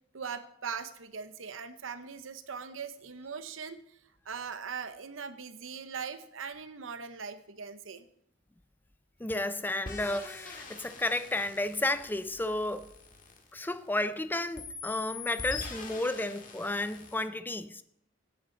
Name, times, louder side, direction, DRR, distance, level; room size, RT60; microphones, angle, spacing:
voice 1, 0.1-3.8 4.3-8.1, right 6 dB, 85° right, 0.9 m, -40 dB
voice 2, 9.2-12.9 13.5-17.8, left 2 dB, 10° left, 0.4 m, -32 dB
sound 1, 9.9-14.1 14.6-17.3, left 5 dB, 45° left, 1.8 m, -44 dB
16.0 x 8.7 x 3.9 m
head